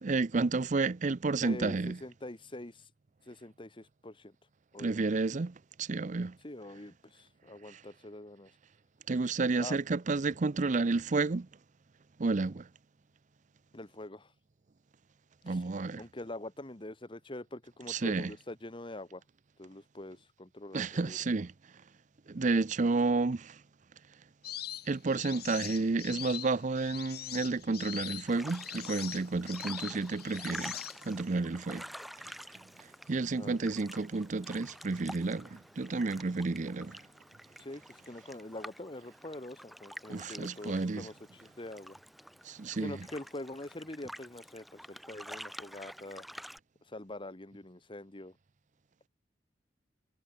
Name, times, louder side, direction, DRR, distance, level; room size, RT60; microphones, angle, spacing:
voice 1, 0.0-2.0 4.8-6.4 7.7-7.8 9.1-11.5 12.2-12.7 15.4-16.0 17.9-18.3 20.7-21.5 22.3-23.6 24.9-30.8 31.0-31.9 33.1-37.0 40.1-41.1 42.4-43.0, right 3 dB, 40° right, 0.5 m, -31 dB
voice 2, 1.4-2.9 3.3-4.3 4.7-5.1 6.4-8.5 9.6-9.8 13.7-14.3 15.5-15.6 16.0-19.2 19.6-21.2 33.4-33.6 37.6-42.0 42.8-46.2 46.8-48.4, left 1 dB, 30° left, 1.4 m, -44 dB
sound 1, 24.4-31.3, left 12 dB, 60° left, 1.0 m, -43 dB
sound 2, 28.3-46.6, equal, ahead, 1.0 m, -48 dB
head